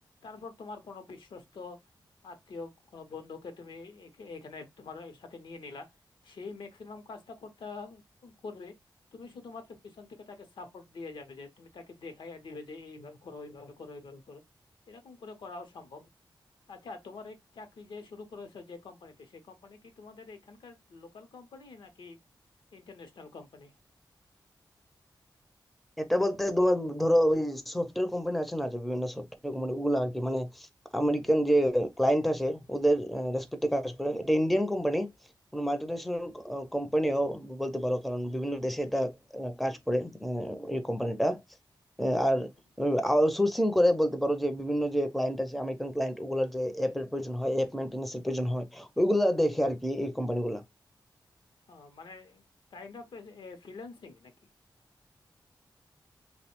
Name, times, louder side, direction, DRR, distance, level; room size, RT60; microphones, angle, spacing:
voice 1, 0.2-1.8 2.2-5.9 6.2-8.7 9.1-14.4 14.9-16.1 16.7-22.2 22.7-23.7 51.7-52.4 52.7-54.3, left 4 dB, 80° left, 0.6 m, -45 dB
voice 2, 26.0-30.7 30.9-35.1 35.5-41.4 42.0-42.5 42.8-50.6, equal, ahead, 0.5 m, -28 dB
2.7 x 2.0 x 2.8 m
cardioid pair, 55°, 8 cm